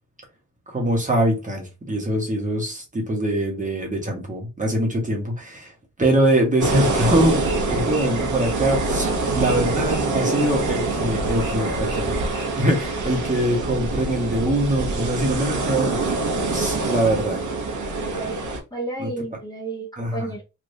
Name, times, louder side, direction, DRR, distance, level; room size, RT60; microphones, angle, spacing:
voice 1, 0.7-5.7 6.0-12.2 12.6-16.2 16.5-17.4 19.0-19.1 20.0-20.3, right 1 dB, 25° right, 1.1 m, -23 dB
sound 1, 6.6-18.6, right 3 dB, 65° right, 0.9 m, -25 dB
sound 2, 7.4-8.9 9.4-11.0 11.4-13.0, right 4 dB, 85° right, 1.4 m, -40 dB
voice 2, 18.0-18.4 18.7-20.4, right 2 dB, 15° left, 1.1 m, -32 dB
3.3 x 2.6 x 2.6 m
wide cardioid pair, 110°, 32 cm